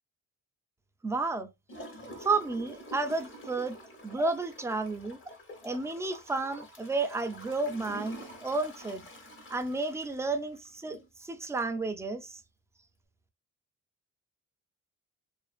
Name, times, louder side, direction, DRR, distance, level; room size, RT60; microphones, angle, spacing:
voice 1, 1.0-1.5 2.2-3.8 4.0-5.2 5.6-9.1 9.5-12.4, right 3 dB, 10° right, 0.3 m, -32 dB
Gurgling / Toilet flush, 1.7-11.1 11.6-11.7, equal, 40° left, 0.9 m, -47 dB
2.4 x 2.4 x 2.3 m
cardioid pair, 90°, 30 cm